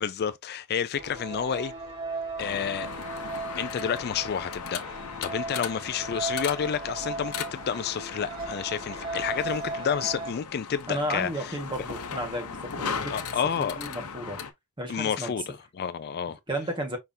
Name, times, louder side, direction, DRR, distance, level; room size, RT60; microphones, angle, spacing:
voice 1, 0.0-1.7 2.4-2.9 3.5-11.6 13.1-13.8 14.9-16.4, left 7 dB, 45° left, 0.4 m, -30 dB
sound 1, 0.9-10.3, right 3 dB, 40° right, 2.3 m, -36 dB
sound 2, 2.4-14.5, left 6 dB, 80° left, 0.8 m, -38 dB
voice 2, 10.9-13.2 13.6-14.4 14.8-15.3 16.5-17.0, equal, 20° right, 1.5 m, -33 dB
5.6 x 3.5 x 2.7 m
head